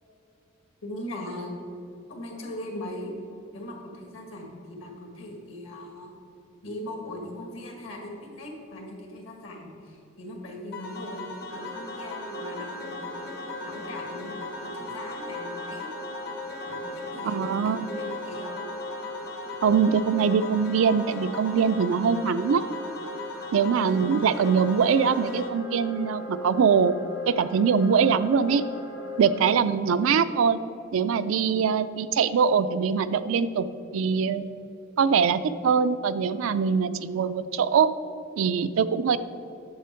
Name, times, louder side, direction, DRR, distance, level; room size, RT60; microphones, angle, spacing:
voice 1, 0.8-1.8 2.1-3.1 3.5-6.1 6.6-13.2 13.6-14.3 14.6-15.9 16.6-18.6, left 1 dB, 70° left, 1 dB, 1.9 m, -39 dB
sound 1, 10.7-25.5, left 3 dB, 50° left, 0.9 m, -39 dB
sound 2, 11.5-29.6, left 1 dB, 85° left, 1.7 m, -39 dB
voice 2, 17.2-17.8 19.6-22.6 23.5-27.0 27.3-28.6 29.2-30.6 30.9-34.5 35.0-37.9 38.4-39.2, right 6 dB, 75° right, 13 dB, 0.4 m, -23 dB
8.5 x 6.9 x 4.4 m, 2.7 s
head